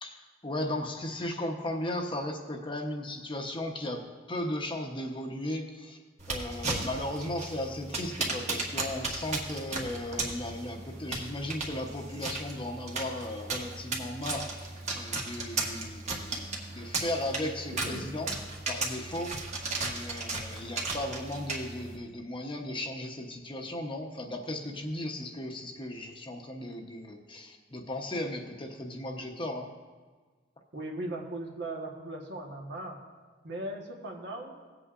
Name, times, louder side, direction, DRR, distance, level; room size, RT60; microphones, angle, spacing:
voice 1, 0.0-4.0 4.3-6.0 6.3-18.3 18.7-19.4 19.9-29.7, left 1 dB, 25° left, 3 dB, 0.9 m, -36 dB
sound 1, 6.2-22.0, right 3 dB, 40° right, 1.3 m, -36 dB
voice 2, 17.7-18.1 30.7-33.0 33.4-34.6, right 1 dB, 65° right, 0 dB, 1.3 m, -38 dB
18.0 x 8.1 x 2.5 m, 1.4 s
head